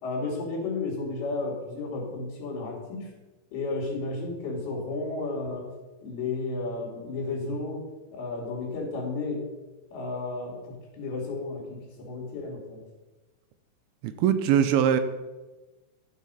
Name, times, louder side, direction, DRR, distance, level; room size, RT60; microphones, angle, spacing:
voice 1, 0.0-3.1 3.5-5.7 6.0-7.8 8.1-9.5 9.9-12.8, left 3 dB, 75° left, -6 dB, 4.4 m, -33 dB
voice 2, 14.0-15.0, right 9 dB, 80° right, 10 dB, 2.4 m, -22 dB
13.5 x 4.9 x 5.5 m, 1.1 s
omnidirectional pair, 4.5 m